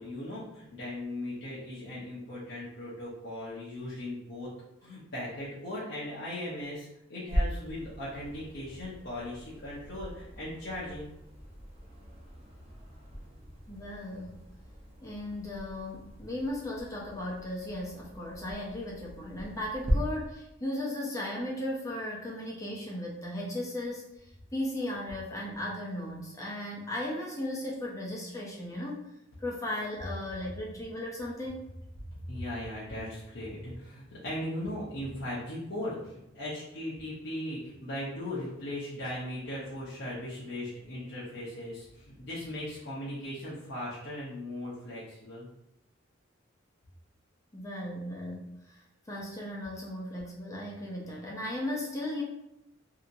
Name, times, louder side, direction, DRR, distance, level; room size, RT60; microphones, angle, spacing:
voice 1, 0.0-4.5 4.8-11.1 32.3-45.5, left 1 dB, 60° left, -9 dB, 0.8 m, -38 dB
sound 1, 7.3-19.9, equal, 30° right, 0.8 m, -39 dB
voice 2, 13.7-14.4 15.0-24.3 24.5-29.0 29.4-31.6 47.5-48.8 49.1-52.2, left 1 dB, 15° left, -3 dB, 0.6 m, -36 dB
2.8 x 2.8 x 2.6 m, 0.83 s
head